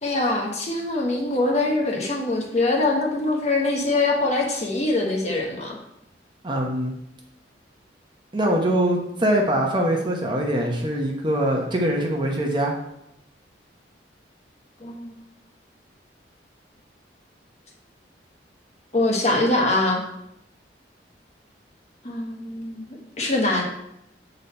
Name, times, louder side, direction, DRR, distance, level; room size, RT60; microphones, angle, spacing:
voice 1, 0.0-5.8 14.8-15.1 18.9-20.0 22.0-22.9 23.2-23.6, left 2 dB, 40° left, 0 dB, 1.2 m, -23 dB
voice 2, 6.4-6.9 8.3-12.8, right 1 dB, 25° right, 0 dB, 0.9 m, -23 dB
7.6 x 4.0 x 4.2 m, 0.80 s
head